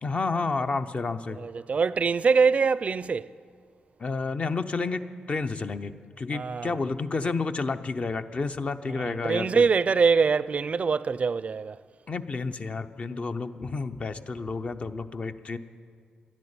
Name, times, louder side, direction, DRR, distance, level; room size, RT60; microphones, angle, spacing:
voice 1, 0.0-1.4 4.0-9.7 12.1-15.6, left 4 dB, 45° left, 0.7 m, -30 dB
voice 2, 1.3-3.3 6.3-6.7 8.9-11.8, right 5 dB, 50° right, 0.4 m, -24 dB
11.0 x 10.5 x 8.8 m
cardioid pair, 60°, 3 cm